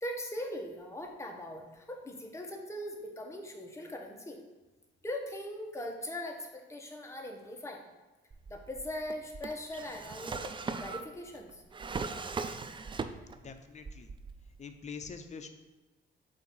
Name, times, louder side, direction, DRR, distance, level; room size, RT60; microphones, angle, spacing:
voice 1, 0.0-4.4 5.0-7.9 8.5-10.5 10.8-11.6, left 1 dB, 15° left, 1 dB, 1.2 m, -40 dB
Drawer open or close, 8.3-13.5 13.8-14.6, right 4 dB, 25° right, 0.4 m, -39 dB
voice 2, 13.4-14.1 14.6-15.5, left 5 dB, 35° left, 7 dB, 0.7 m, -44 dB
8.0 x 2.8 x 5.5 m, 1.2 s
cardioid pair, 90°, 20 cm